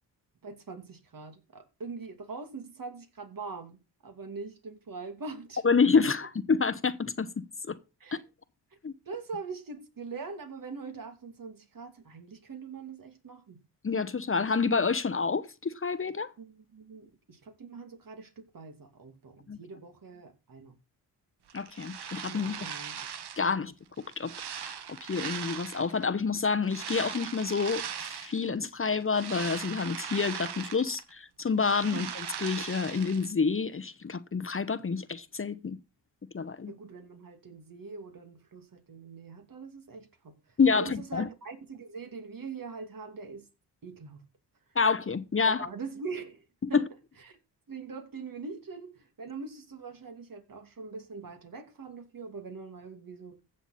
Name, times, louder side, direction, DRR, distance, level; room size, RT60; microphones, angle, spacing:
voice 1, 0.4-5.6 8.0-8.2 9.1-13.6 16.4-20.8 22.3-23.0 23.5-23.6 31.9-32.0 36.7-40.4 40.7-43.5 43.8-44.3 45.4-46.8 47.2-47.4 47.7-53.4, right 4 dB, 55° right, 2.6 m, -43 dB
voice 2, 5.6-7.8 8.1-8.2 8.8-8.9 13.8-16.3 19.5-19.6 21.5-22.6 23.4-23.7 24.2-32.1 32.4-35.8 36.3-36.7 40.6-41.3 44.7-45.7 46.6-46.8, left 5 dB, 30° left, 1.0 m, -28 dB
sound 1, 21.5-23.5 24.0-26.0 26.6-28.5 28.9-31.1 31.4-33.3, right 8 dB, 70° right, 1.5 m, -39 dB
15.0 x 7.0 x 4.2 m
cardioid pair, 55°, 41 cm